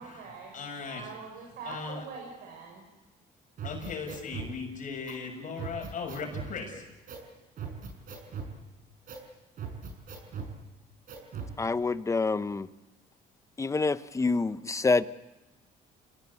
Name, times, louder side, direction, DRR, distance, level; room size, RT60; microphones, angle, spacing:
voice 1, 0.0-2.8, right 5 dB, 75° right, 0 dB, 6.8 m, -44 dB
voice 2, 0.5-1.0 1.7-2.0 3.6-6.8, left 5 dB, 50° left, 2 dB, 6.9 m, -37 dB
sound 1, 3.6-4.5 5.1-5.2 5.6-6.5 7.1-7.3 7.6-8.5 9.1-9.3 9.6-10.5 11.1-11.5, right 6 dB, 55° right, 6.2 m, -39 dB
voice 3, 11.6-12.7 13.6-15.0, left 3 dB, 20° left, 14 dB, 0.9 m, -27 dB
28.5 x 18.5 x 8.4 m, 1.1 s
cardioid pair, 110°, 17 cm